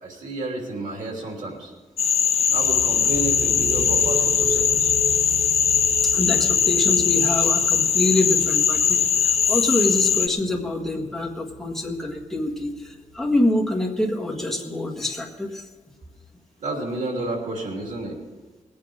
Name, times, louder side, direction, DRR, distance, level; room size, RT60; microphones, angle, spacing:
voice 1, 0.0-1.7 2.5-4.9 16.6-18.2, right 2 dB, 90° right, 1 dB, 3.0 m, -31 dB
Frog, 2.0-10.3, left 7 dB, 55° left, 0.5 m, -20 dB
sound 1, 2.5-14.0, right 2 dB, 60° right, 3.7 m, -36 dB
voice 2, 6.0-15.6, left 1 dB, 5° left, 0 dB, 1.6 m, -26 dB
20.0 x 8.6 x 5.0 m, 1.3 s
wide cardioid pair, 140°, 13 cm